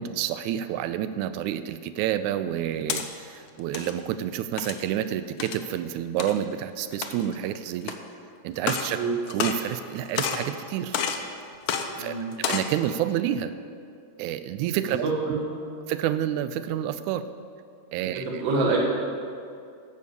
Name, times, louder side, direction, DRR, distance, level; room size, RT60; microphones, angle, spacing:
voice 1, 0.0-7.9 8.4-9.0 9.3-11.0 12.0-13.5 14.2-15.4 15.9-17.2 17.9-18.3, right 11 dB, 90° right, 12 dB, 2.0 m, -29 dB
sound 1, 2.5-3.0 3.6-3.9 4.6-4.9 5.4-5.6 6.2-6.3 6.9-7.3 7.8-7.9 8.6-8.9 9.3-9.9 10.2-10.5 10.9-11.2 11.7-11.8 12.3-12.7, left 7 dB, 90° left, 1.2 m, -29 dB
voice 2, 12.0-12.3 14.8-15.8 18.1-18.8, right 3 dB, 60° right, -2 dB, 2.7 m, -27 dB
14.5 x 5.2 x 6.9 m, 2.4 s
omnidirectional pair, 3.3 m